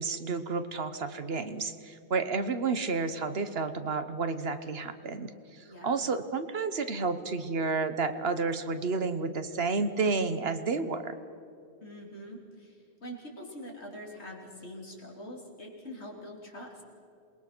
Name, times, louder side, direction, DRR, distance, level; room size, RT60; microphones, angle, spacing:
voice 1, 0.0-11.1, right 4 dB, 65° right, 10 dB, 1.3 m, -31 dB
voice 2, 5.6-6.1 11.8-16.8, equal, 85° left, -1 dB, 3.9 m, -44 dB
27.0 x 20.5 x 6.1 m, 2.6 s
omnidirectional pair, 1.1 m